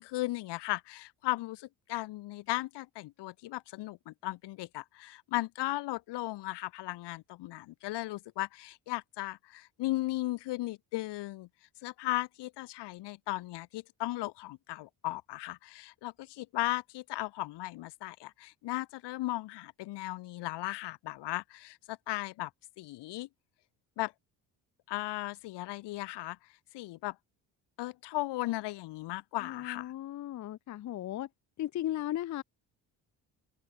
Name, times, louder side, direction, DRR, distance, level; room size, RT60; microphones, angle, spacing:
voice 1, 0.0-11.5 11.8-22.5 22.8-23.3 24.0-24.1 24.9-26.4 26.7-27.2 27.8-29.9, left 18 dB, 70° left, 0.9 m, -36 dB
voice 2, 29.4-31.3 31.6-32.4, left 13 dB, 45° left, 0.5 m, -36 dB
supercardioid pair, 75°, 43 cm